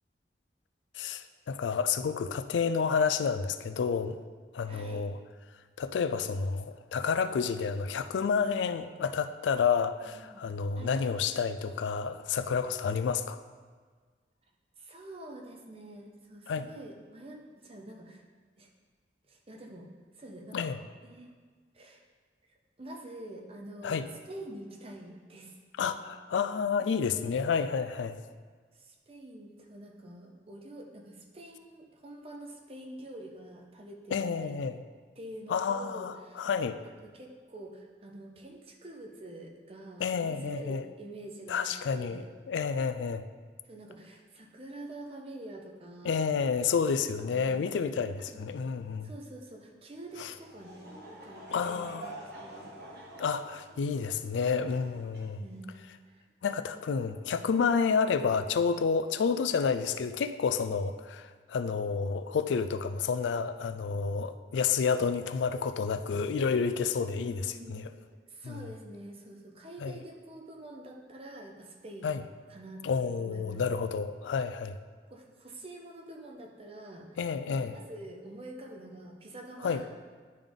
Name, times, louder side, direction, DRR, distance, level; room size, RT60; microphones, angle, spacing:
voice 1, 1.0-4.2 4.5-5.2 5.8-13.4 16.5-16.7 20.5-20.8 23.8-24.1 25.8-28.2 34.1-34.8 35.5-36.8 40.0-40.8 41.5-43.2 46.0-49.1 50.2-50.3 51.5-52.1 53.2-55.4 56.4-67.9 68.4-68.6 69.8-69.9 72.0-72.2 72.8-74.8 77.2-77.8 79.6-79.8, left 5 dB, 85° left, 10 dB, 0.4 m, -30 dB
voice 2, 4.7-5.0 9.9-10.5 10.8-11.0 14.8-18.2 18.6-18.7 19.3-19.9 20.2-20.7 21.0-21.3 21.7-22.0 22.5-25.6 26.8-27.1 28.7-34.6 35.2-36.5 36.8-42.3 43.6-46.3 47.2-47.6 48.2-48.5 49.0-52.7 55.4-56.2 67.1-67.9 68.3-72.2 72.5-73.6 75.1-77.2 77.5-79.9, right 1 dB, 35° right, 1 dB, 0.8 m, -47 dB
Laughter / Crowd, 50.1-55.8, right 1 dB, 60° right, 1.2 m, -47 dB
10.5 x 3.7 x 3.5 m, 1.5 s
head